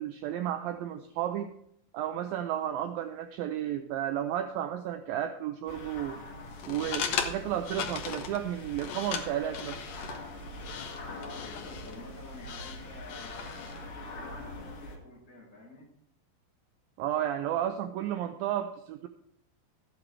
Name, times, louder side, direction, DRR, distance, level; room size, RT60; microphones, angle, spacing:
voice 1, 0.0-1.5 1.9-6.2 6.7-9.8 17.0-19.1, right 11 dB, 80° right, 7 dB, 2.2 m, -32 dB
sound 1, 5.7-15.0, left 2 dB, 55° left, 3.5 m, -43 dB
sound 2, 6.5-13.8, left 7 dB, 85° left, 1.5 m, -38 dB
voice 2, 11.1-15.9, left 1 dB, 20° left, -4 dB, 4.7 m, -49 dB
14.0 x 9.6 x 3.4 m, 0.73 s
omnidirectional pair, 4.6 m